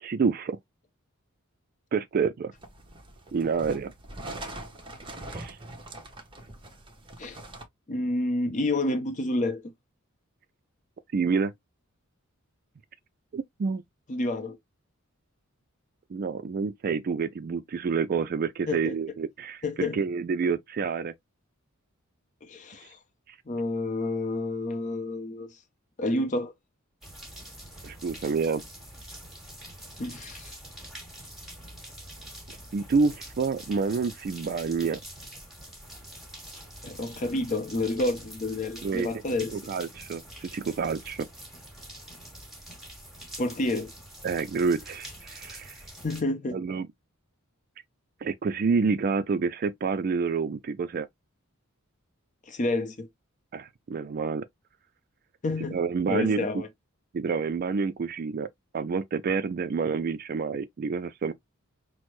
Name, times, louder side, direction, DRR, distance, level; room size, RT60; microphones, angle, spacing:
voice 1, 0.0-0.6 1.9-2.5 3.3-3.9 5.3-5.6 11.1-11.5 13.3-13.8 16.1-19.6 19.9-21.1 23.3-23.4 27.8-28.6 32.7-35.0 38.8-39.1 39.5-41.3 44.2-45.8 46.5-46.9 48.2-51.1 53.5-54.4 55.7-56.6 57.1-58.5 58.7-61.3, right 5 dB, 45° right, 0.3 m, -28 dB
sound 1, 2.5-7.6, right 1 dB, 25° right, 0.9 m, -42 dB
voice 2, 7.9-9.6 14.1-14.6 18.7-18.9 19.6-20.0 22.4-23.0 23.5-25.5 26.0-26.5 30.0-30.5 36.8-39.6 43.4-43.9 46.0-46.6 52.5-53.1 55.4-55.8 56.1-56.7, left 2 dB, 35° left, 0.6 m, -29 dB
sound 2, 27.0-46.2, right 1 dB, ahead, 1.7 m, -45 dB
6.0 x 2.0 x 3.1 m
head